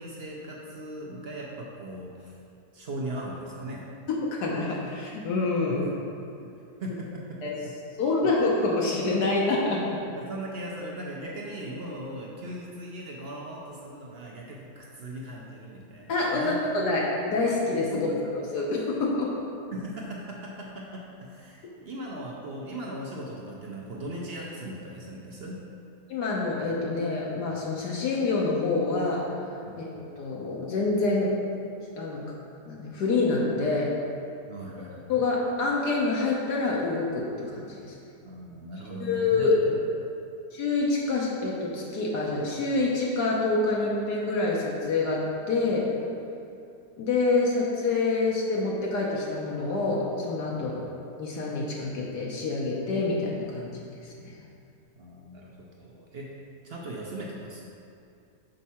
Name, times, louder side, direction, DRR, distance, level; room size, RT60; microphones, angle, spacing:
voice 1, 0.0-2.4 2.7-3.9 5.7-5.9 6.4-6.5 6.8-7.4 10.0-16.6 17.9-18.3 19.7-25.6 29.7-29.8 34.5-35.1 38.2-39.8 50.5-50.7 55.0-56.3 56.6-57.6, right 1 dB, 60° right, -3 dB, 0.6 m, -38 dB
voice 2, 4.1-5.9 7.4-7.5 8.0-9.8 16.1-19.3 26.1-29.3 29.8-31.3 32.0-32.2 32.7-33.9 35.1-37.9 39.0-39.6 40.5-45.9 47.0-50.8 51.2-53.7, left 3 dB, 75° left, -3 dB, 1.3 m, -27 dB
6.4 x 4.6 x 4.2 m, 2.6 s
omnidirectional pair, 1.8 m